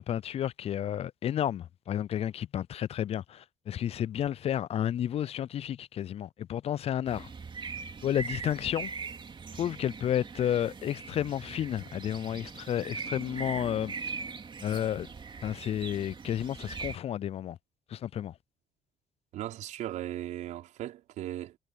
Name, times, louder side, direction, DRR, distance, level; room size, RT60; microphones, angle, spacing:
voice 1, 0.0-7.3 8.0-8.9 9.5-13.9 14.6-15.1 15.4-17.6 17.9-18.3, left 10 dB, 55° left, 0.4 m, -31 dB
sound 1, 7.1-17.0, right 5 dB, 40° right, 2.7 m, -41 dB
voice 2, 19.3-21.6, right 13 dB, 75° right, 5.1 m, -37 dB
supercardioid pair, 60°, 13 cm